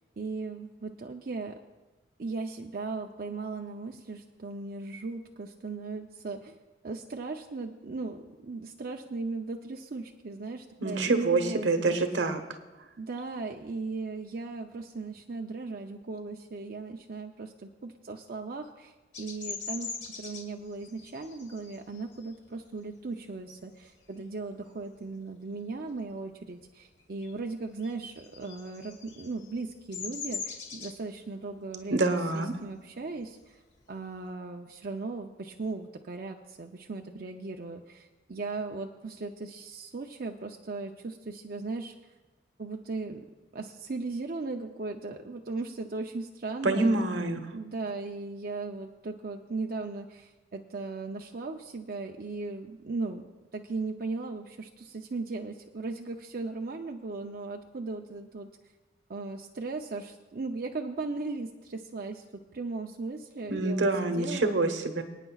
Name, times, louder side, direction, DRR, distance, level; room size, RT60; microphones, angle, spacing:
voice 1, 0.2-1.6 2.2-6.6 6.8-12.0 13.0-33.6 33.9-41.9 42.6-43.2 43.5-47.0 47.5-53.3 53.5-58.5 59.1-62.2 62.5-64.5, right 3 dB, 50° right, 2 dB, 0.6 m, -37 dB
voice 2, 10.8-12.4 31.9-32.5 46.6-47.5 63.5-65.0, right 2 dB, 80° right, 7 dB, 1.1 m, -26 dB
Bird vocalization bird call bird song, 19.1-24.3 24.8-25.1 25.4-26.6 26.9-34.3, left 5 dB, 70° left, 1.6 m, -42 dB
26.0 x 9.0 x 2.4 m, 1.2 s
head